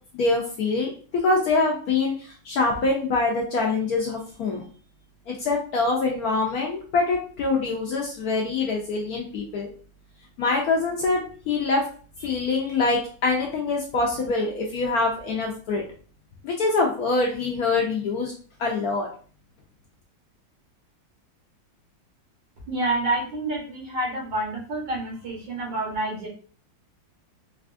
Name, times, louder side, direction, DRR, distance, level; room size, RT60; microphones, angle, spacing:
voice 1, 0.1-4.6 5.3-9.7 10.4-11.8 12.2-15.8 16.4-18.3 18.6-19.1, left 3 dB, 70° left, 0 dB, 0.9 m, -24 dB
voice 2, 22.7-26.3, right 2 dB, 80° right, -2 dB, 1.9 m, -28 dB
4.1 x 2.3 x 2.5 m, 0.42 s
omnidirectional pair, 2.0 m